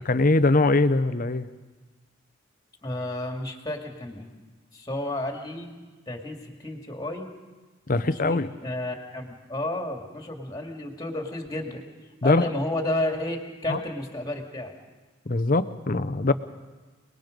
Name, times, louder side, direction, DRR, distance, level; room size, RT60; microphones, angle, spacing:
voice 1, 0.1-1.5 7.9-8.5 12.2-12.5 13.7-13.8 15.3-16.3, left 2 dB, 40° left, 13 dB, 0.7 m, -22 dB
voice 2, 2.8-4.3 4.7-5.7 6.1-7.3 7.9-11.8 12.2-14.7, left 1 dB, 15° left, 2 dB, 2.4 m, -32 dB
29.5 x 20.0 x 5.2 m, 1.3 s
head